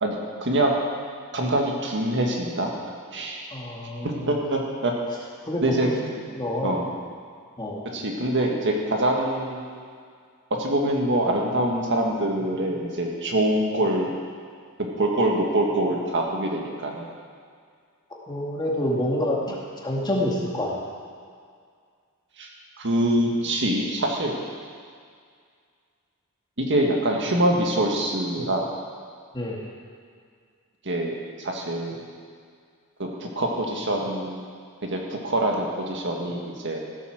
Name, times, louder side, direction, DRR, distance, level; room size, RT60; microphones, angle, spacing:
voice 1, 0.4-0.7 1.3-3.5 4.0-4.9 5.6-5.9 6.6-6.9 7.9-9.8 10.6-14.1 14.8-17.1 22.4-22.5 22.8-24.4 26.6-28.7 30.8-32.1 33.0-34.5 34.8-36.8, right 1 dB, 55° right, 0 dB, 1.8 m, -25 dB
voice 2, 3.5-4.3 5.5-5.9 6.3-6.8 7.6-7.8 18.3-20.8 29.3-29.6, left 1 dB, 20° left, -3 dB, 2.0 m, -27 dB
15.5 x 8.3 x 6.4 m, 2.1 s
head